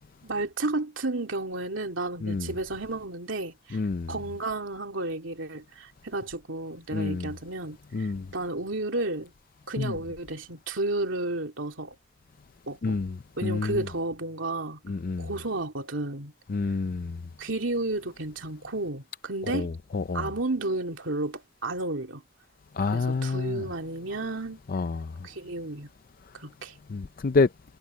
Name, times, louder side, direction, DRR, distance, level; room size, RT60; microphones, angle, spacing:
voice 1, 0.2-3.8 4.1-9.3 9.7-12.0 12.7-13.0 13.4-14.8 15.2-16.3 17.4-19.7 20.1-22.2 22.8-24.6 25.2-25.9 26.3-26.8, right 2 dB, 80° right, 2.7 m, -32 dB
voice 2, 3.7-4.1 6.9-7.3 7.9-8.2 9.8-9.9 12.8-13.1 13.4-13.8 14.9-15.3 16.5-17.2 19.5-20.3 22.8-23.6 24.7-25.1 26.9-27.5, left 4 dB, 50° left, 0.5 m, -28 dB
head